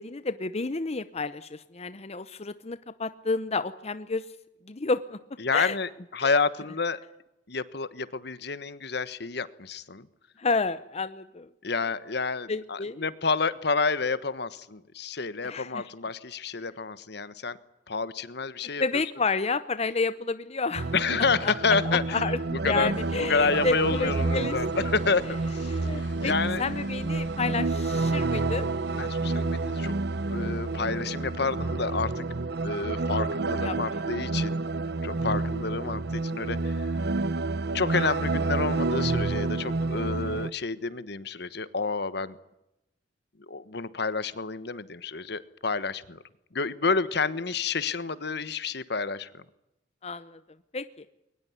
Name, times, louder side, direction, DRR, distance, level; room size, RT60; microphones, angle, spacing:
voice 1, 0.0-4.3 4.7-5.2 5.5-5.8 6.2-6.3 10.4-11.5 12.5-13.0 15.4-15.9 18.8-21.0 21.4-21.5 21.8-22.4 22.6-24.8 25.7-26.3 26.6-28.7 33.6-34.0 50.0-50.4 50.7-51.1, left 3 dB, 35° left, 13 dB, 0.8 m, -30 dB
voice 2, 5.4-7.0 7.5-10.1 11.6-17.6 17.9-19.0 20.9-22.2 22.6-22.9 23.2-26.6 29.0-29.9 30.3-32.3 32.6-34.6 35.0-36.9 37.7-42.4 43.5-46.2 46.5-49.4, left 4 dB, 65° left, 15 dB, 1.3 m, -29 dB
sound 1, 20.8-40.5, right 3 dB, 65° right, 0.9 m, -29 dB
sound 2, 22.4-32.9, right 2 dB, 85° right, 4.6 m, -50 dB
22.5 x 20.0 x 9.7 m, 0.88 s
head